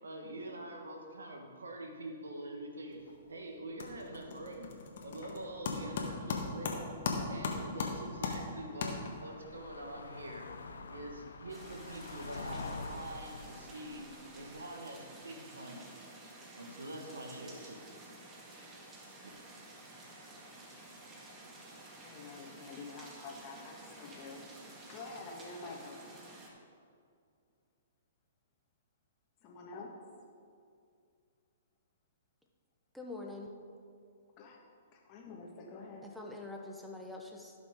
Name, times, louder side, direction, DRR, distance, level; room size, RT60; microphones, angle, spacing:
voice 1, 0.0-6.9 7.3-10.5 10.9-14.1 14.3-16.1 16.6-17.7, right 1 dB, 80° right, 3 dB, 1.6 m, -45 dB
sound 1, 2.9-3.3 3.6-9.4, left 4 dB, 60° left, 1.6 m, -38 dB
sound 2, 5.5-5.9 6.1-14.6, left 4 dB, 75° left, 0.9 m, -47 dB
sound 3, 11.5-26.5, right 2 dB, 20° right, 1.8 m, -52 dB
voice 2, 22.0-24.4 24.9-26.2 29.4-30.0 34.4-34.6 34.9-36.1, left 3 dB, 35° left, 0 dB, 1.8 m, -48 dB
voice 3, 32.9-33.5 36.0-37.5, left 2 dB, ahead, -1 dB, 1.0 m, -44 dB
16.5 x 6.1 x 3.8 m, 2.3 s
figure-of-eight pair, 120°, 0 cm